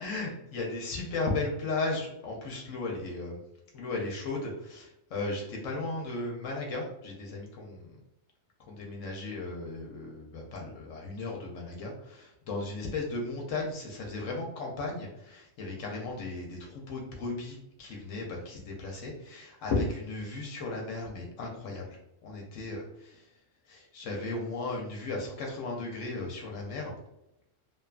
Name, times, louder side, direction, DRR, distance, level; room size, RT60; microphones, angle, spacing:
voice 1, 0.0-3.4 3.7-8.0 8.7-23.3 23.7-26.9, left 3 dB, 75° left, -1 dB, 0.9 m, -35 dB
2.8 x 2.2 x 2.3 m, 0.85 s
omnidirectional pair, 1.4 m